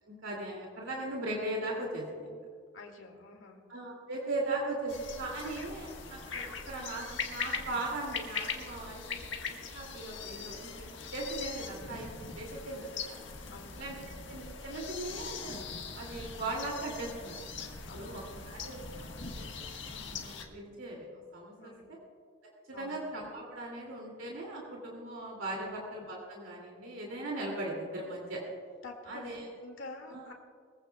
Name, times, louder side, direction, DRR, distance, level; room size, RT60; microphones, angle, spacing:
voice 1, 0.0-2.4 3.7-13.2 13.8-17.4 17.9-21.7 22.8-28.4 29.1-29.4 30.1-30.2, right 2 dB, 85° right, -2 dB, 2.6 m, -39 dB
voice 2, 2.7-3.6 13.5-14.1 17.9-18.5 21.6-21.9 22.7-23.0 25.5-25.7 28.8-30.3, left 2 dB, 90° left, 2 dB, 2.1 m, -48 dB
sound 1, 4.9-20.5, left 5 dB, 70° left, 1.5 m, -41 dB
22.0 x 15.0 x 2.3 m, 2.1 s
head